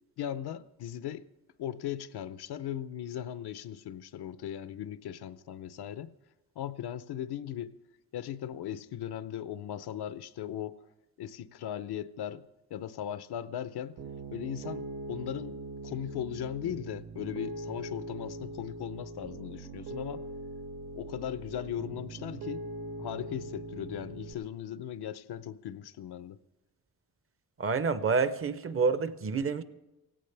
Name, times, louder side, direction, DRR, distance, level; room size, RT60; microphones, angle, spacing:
voice 1, 0.2-1.2 1.6-6.1 6.6-7.7 8.1-10.8 11.2-12.4 12.7-14.0 14.3-20.2 20.9-22.7 23.0-26.4, left 10 dB, 80° left, 0.7 m, -38 dB
Piano, 14.0-24.3, right 2 dB, 65° right, 1.1 m, -41 dB
voice 2, 27.6-29.6, right 5 dB, 35° right, 0.6 m, -28 dB
17.5 x 16.5 x 3.4 m
wide cardioid pair, 175°, 39 cm